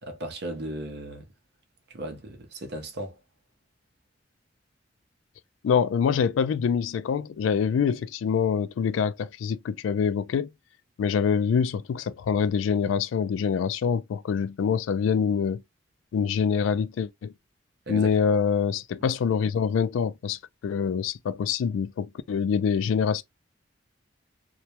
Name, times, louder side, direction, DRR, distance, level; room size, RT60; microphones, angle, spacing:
voice 1, 0.0-1.3 1.9-3.2 17.9-18.1, right 1 dB, 55° right, 0.6 m, -36 dB
voice 2, 5.6-10.5 11.0-15.6 16.1-17.3 17.9-23.2, left 6 dB, 85° left, 0.3 m, -25 dB
2.2 x 2.0 x 2.8 m
head